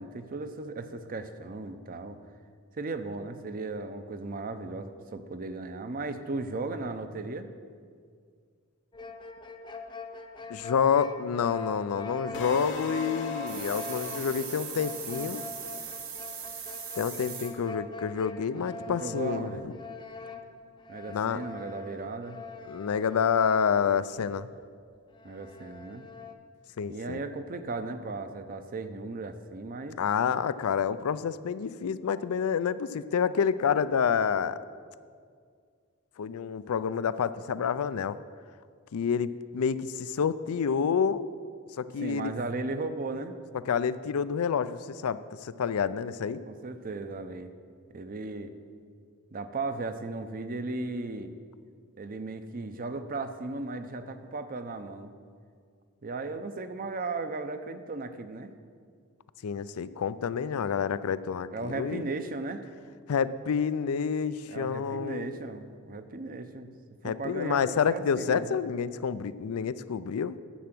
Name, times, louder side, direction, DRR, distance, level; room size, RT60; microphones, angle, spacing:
voice 1, 0.0-2.2 2.7-7.5 18.5-19.6 20.9-22.4 25.2-26.0 26.9-30.0 42.0-43.3 46.5-47.5 47.9-48.5 49.3-51.3 52.0-55.1 56.0-58.5 61.5-62.6 64.5-66.7 67.0-68.6, right 3 dB, 40° right, 9 dB, 0.6 m, -36 dB
sound 1, 8.9-24.3 24.6-24.7 25.1-26.3, left 4 dB, 20° left, 0.7 m, -43 dB
voice 2, 10.5-15.4 17.0-19.7 21.1-21.4 22.7-24.5 26.8-27.2 30.0-34.6 36.2-38.2 38.9-41.3 41.8-42.3 43.7-46.4 59.4-62.1 63.1-65.3 67.0-70.4, left 6 dB, 90° left, 15 dB, 0.4 m, -28 dB
sound 2, 12.3-16.4, left 1 dB, 60° left, 0.9 m, -40 dB
sound 3, 13.5-17.5, right 7 dB, 70° right, 1.5 m, -40 dB
10.0 x 7.6 x 6.0 m, 2.1 s
head